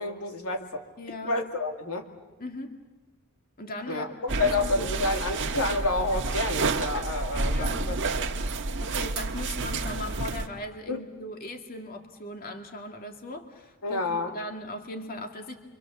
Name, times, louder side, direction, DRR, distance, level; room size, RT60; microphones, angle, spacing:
voice 1, 0.0-0.8 1.2-2.1 3.9-8.0 10.9-11.0 13.8-14.3, left 2 dB, 80° left, 4 dB, 2.3 m, -29 dB
voice 2, 1.0-1.4 2.4-2.8 3.6-4.9 7.4-7.9 8.8-15.6, left 2 dB, 45° left, 4 dB, 2.2 m, -39 dB
sound 1, 4.3-10.5, right 3 dB, 60° right, 1.5 m, -29 dB
28.5 x 25.0 x 7.4 m, 1.2 s
head